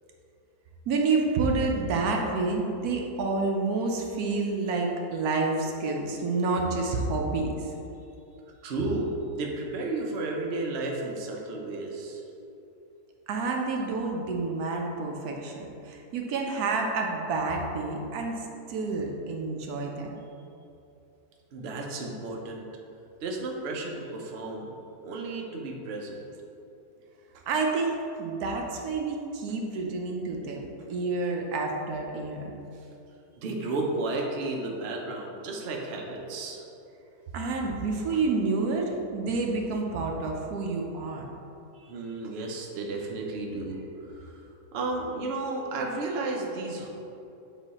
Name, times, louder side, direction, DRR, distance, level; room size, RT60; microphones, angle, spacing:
voice 1, 0.9-7.7 13.3-20.2 27.5-32.5 37.3-41.3, right 3 dB, 80° right, 1 dB, 1.2 m, -29 dB
voice 2, 8.6-12.2 21.5-22.7 23.2-24.7 25.0-26.2 27.3-27.4 32.7-32.9 33.4-36.6 38.1-38.2 41.7-46.9, right 2 dB, 50° right, 0 dB, 0.8 m, -33 dB
7.3 x 3.2 x 4.1 m, 2.8 s
omnidirectional pair, 1.6 m